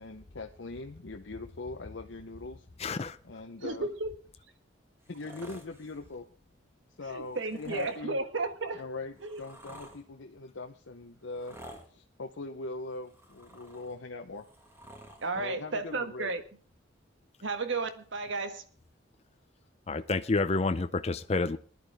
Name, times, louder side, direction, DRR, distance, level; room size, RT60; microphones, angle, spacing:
voice 1, 0.0-2.7 3.2-3.9 5.1-6.3 7.0-8.2 8.7-11.5 11.9-14.5 15.3-16.3, left 3 dB, 80° left, 0.9 m, -41 dB
voice 2, 2.8-3.2 19.9-21.6, left 3 dB, 35° left, 0.5 m, -29 dB
voice 3, 3.6-4.1 7.1-8.8 9.2-9.4 15.2-16.4 17.4-18.6, right 3 dB, 80° right, 1.5 m, -33 dB
sound 1, 5.0-6.1 7.3-8.0 8.8-10.0 11.3-11.9 12.9-14.0 14.3-15.3 16.3-16.4, right 1 dB, 15° right, 2.0 m, -51 dB
19.5 x 11.0 x 3.5 m
head